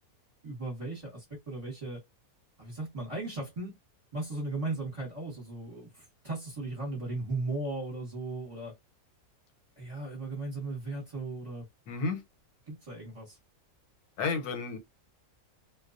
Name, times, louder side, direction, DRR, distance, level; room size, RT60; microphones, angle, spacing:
voice 1, 0.4-2.0 2.6-3.7 4.1-8.7 9.8-11.6 12.7-13.4, right 2 dB, 30° right, 0.9 m, -37 dB
voice 2, 11.9-12.2 14.2-14.8, left 4 dB, 85° left, 1.3 m, -31 dB
2.4 x 2.2 x 2.4 m
omnidirectional pair, 1.6 m